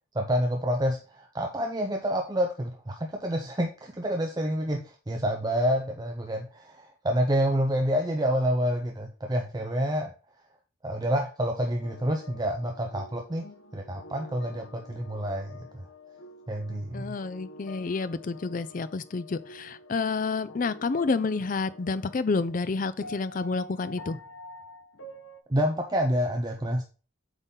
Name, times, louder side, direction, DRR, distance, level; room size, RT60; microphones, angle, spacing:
voice 1, 0.1-10.1 10.8-13.5 13.7-15.9 16.5-17.1 25.5-26.8, equal, 20° right, 0.5 m, -28 dB
sound 1, 11.8-22.6 23.0-25.4, left 2 dB, 80° left, 0.9 m, -47 dB
voice 2, 16.9-24.2, left 4 dB, 40° left, 0.4 m, -29 dB
8.0 x 3.8 x 3.8 m
head